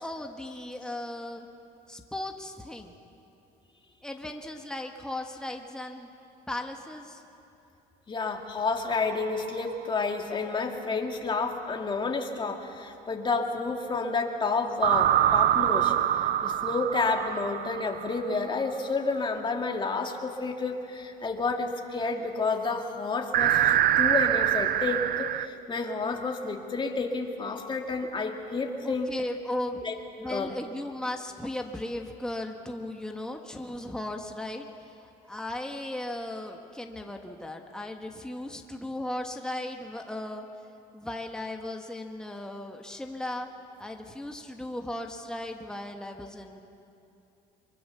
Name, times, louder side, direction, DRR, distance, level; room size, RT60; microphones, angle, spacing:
voice 1, 0.0-1.5 1.9-2.9 4.0-6.1 6.5-7.2 28.8-29.8 30.2-34.7 35.0-40.5 40.9-43.5 43.8-46.6, left 1 dB, 5° left, 3 dB, 1.6 m, -36 dB
voice 2, 8.1-29.1 29.8-30.0 30.3-30.5, left 4 dB, 30° left, 2 dB, 2.5 m, -30 dB
sound 1, 8.9-9.7 14.8-18.5 23.3-25.5, right 11 dB, 60° right, 0.7 m, -25 dB
24.5 x 23.5 x 7.0 m, 2.8 s
cardioid pair, 110°, 17 cm